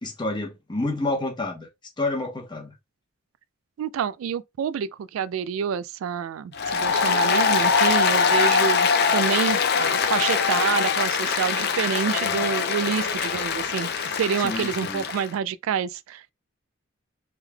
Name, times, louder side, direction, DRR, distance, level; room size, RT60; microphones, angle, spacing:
voice 1, 0.0-1.7 2.0-2.7 14.4-15.0, left 2 dB, 20° left, 1.0 m, -29 dB
voice 2, 3.8-16.3, right 7 dB, 90° right, 0.3 m, -28 dB
Applause, 6.5-15.3, left 5 dB, 55° left, 0.5 m, -23 dB
3.5 x 3.2 x 2.2 m
head